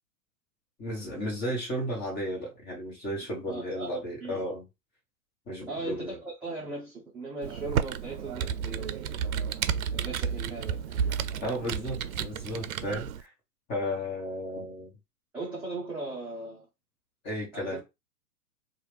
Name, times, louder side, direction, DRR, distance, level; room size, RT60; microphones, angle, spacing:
voice 1, 0.8-4.6 5.5-6.2 11.4-13.3 13.7-14.9 17.2-17.8, equal, 20° left, 1.4 m, -34 dB
voice 2, 3.5-3.9 4.2-4.5 5.7-9.2 9.9-11.2 15.3-16.7 17.5-17.8, right 3 dB, 5° right, 0.6 m, -38 dB
Computer keyboard, 7.4-13.2, right 8 dB, 65° right, 0.5 m, -31 dB
2.9 x 2.4 x 3.4 m
hypercardioid pair, 135°, 45 cm